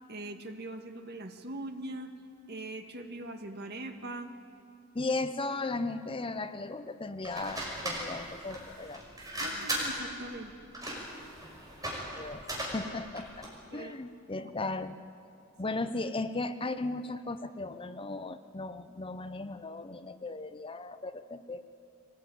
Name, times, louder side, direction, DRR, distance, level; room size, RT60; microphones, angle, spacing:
voice 1, 0.1-2.1 2.5-4.3 9.4-10.6 13.7-14.0 14.4-14.5 15.6-15.8, right 1 dB, 55° right, 6 dB, 1.8 m, -41 dB
voice 2, 4.9-9.0 12.1-12.4 12.7-13.5 13.7-15.0 15.6-21.6, left 2 dB, 25° left, 11 dB, 0.7 m, -36 dB
sound 1, 7.2-13.6, right 1 dB, 20° right, 5.6 m, -38 dB
24.0 x 19.0 x 9.2 m, 2.6 s
head